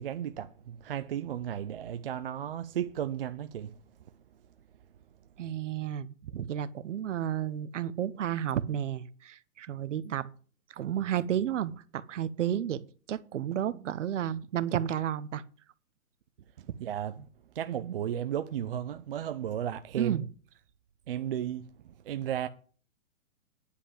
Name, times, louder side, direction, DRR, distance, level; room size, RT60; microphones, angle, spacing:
voice 1, 0.0-3.8 16.6-17.3 17.5-20.3 21.1-21.7 22.0-22.5, right 10 dB, 40° right, 0.5 m, -34 dB
voice 2, 5.4-10.3 10.7-12.8 13.1-15.4 20.0-20.2, right 10 dB, 60° right, 0.9 m, -32 dB
9.8 x 5.6 x 8.3 m
hypercardioid pair, 160°, 42 cm